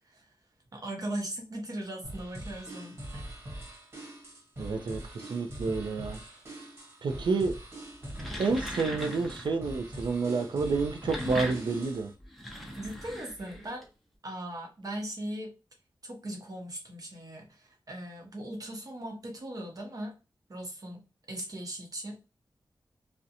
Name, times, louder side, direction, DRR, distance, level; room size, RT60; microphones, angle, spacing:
voice 1, 0.7-3.3 12.8-13.9 14.2-15.5 16.0-20.1 20.5-21.0 21.3-22.2, right 1 dB, 50° right, 0.8 m, -39 dB
sound 1, 2.0-12.1, right 1 dB, 35° right, 1.3 m, -43 dB
voice 2, 4.6-5.0 5.3-6.2 7.0-7.5 8.4-12.1, right 4 dB, 75° right, 0.4 m, -29 dB
sound 2, 7.9-9.6 10.8-13.8, equal, ahead, 0.6 m, -39 dB
2.4 x 2.1 x 2.7 m
wide cardioid pair, 130°, 8 cm